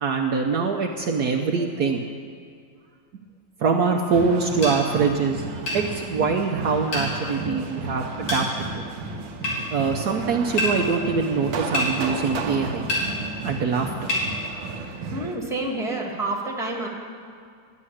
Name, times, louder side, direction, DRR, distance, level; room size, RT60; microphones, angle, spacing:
voice 1, 0.0-2.0 3.6-5.4 5.7-8.9 9.7-12.9 13.4-14.1, right 5 dB, 65° right, 2 dB, 1.2 m, -24 dB
sound 1, 4.1-15.4, right 3 dB, 85° right, 1.7 m, -33 dB
sound 2, 4.6-4.8 5.7-5.8 6.9-7.1 8.3-8.4 9.4-9.6 10.6-10.7 11.7-11.9 12.9-13.1 14.1-14.3, left 1 dB, 85° left, 4.1 m, -25 dB
voice 2, 15.1-16.9, right 2 dB, ahead, -1 dB, 1.6 m, -28 dB
12.0 x 7.5 x 9.9 m, 2.2 s
omnidirectional pair, 2.0 m